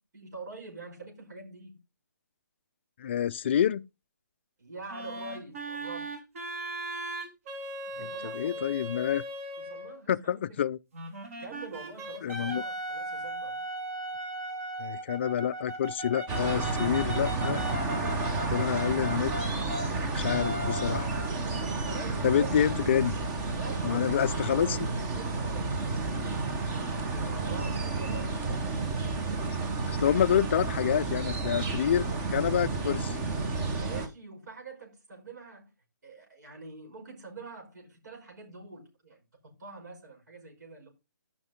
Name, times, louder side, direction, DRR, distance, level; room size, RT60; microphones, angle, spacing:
voice 1, 0.0-1.8 4.6-6.1 7.8-8.7 9.6-10.6 11.4-13.6 21.8-22.5 23.5-29.0 33.7-35.7 36.0-40.9, right 3 dB, 60° right, 5.5 m, -45 dB
voice 2, 3.0-3.9 8.3-9.2 10.1-10.8 12.2-12.6 14.8-17.6 18.5-19.3 20.1-21.1 22.2-23.1 23.8-24.8 29.9-33.2, left 9 dB, 35° left, 0.4 m, -27 dB
sound 1, 4.9-10.0 10.9-19.9 20.2-21.3, right 1 dB, 45° right, 2.7 m, -38 dB
sound 2, 16.3-34.1, right 3 dB, 15° right, 1.0 m, -31 dB
12.5 x 5.9 x 3.6 m
hypercardioid pair, 160°, 11 cm